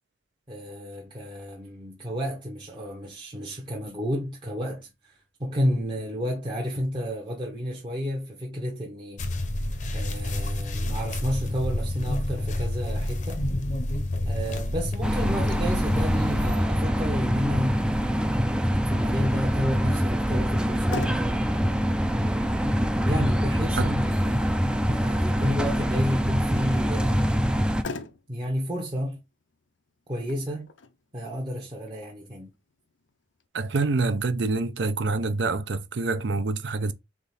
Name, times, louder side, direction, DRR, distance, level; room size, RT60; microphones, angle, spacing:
voice 1, 0.5-9.3 9.9-13.5 14.2-17.8 18.9-21.2 23.0-24.5 24.9-27.5 28.3-29.2 30.1-30.7 31.1-32.5, equal, 25° right, 0.8 m, -31 dB
sound 1, 9.2-16.6, left 1 dB, 40° left, 0.7 m, -28 dB
sound 2, 15.0-27.8, equal, 5° right, 0.3 m, -24 dB
Motor vehicle (road), 20.5-33.5, left 3 dB, 80° left, 0.6 m, -45 dB
voice 2, 33.5-36.9, right 3 dB, 65° right, 0.6 m, -26 dB
3.6 x 3.5 x 4.0 m
head